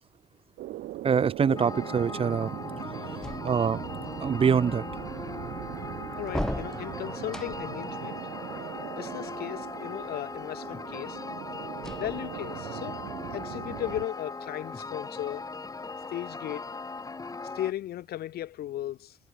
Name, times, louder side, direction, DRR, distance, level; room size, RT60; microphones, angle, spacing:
sound 1, 0.6-14.1, right 16 dB, 75° right, 3.3 m, -40 dB
voice 1, 1.0-2.5 3.4-3.9 4.2-4.8, right 7 dB, 35° right, 1.0 m, -24 dB
sound 2, 1.6-17.7, left 3 dB, 20° left, 6.9 m, -39 dB
sound 3, 3.2-4.0 6.3-7.9 11.8-12.8, left 1 dB, 5° left, 6.8 m, -37 dB
voice 2, 6.2-8.2 9.0-11.2 11.9-13.0 13.3-15.5 16.1-16.7 17.5-19.2, left 13 dB, 65° left, 6.7 m, -36 dB
cardioid pair, 110°, 17 cm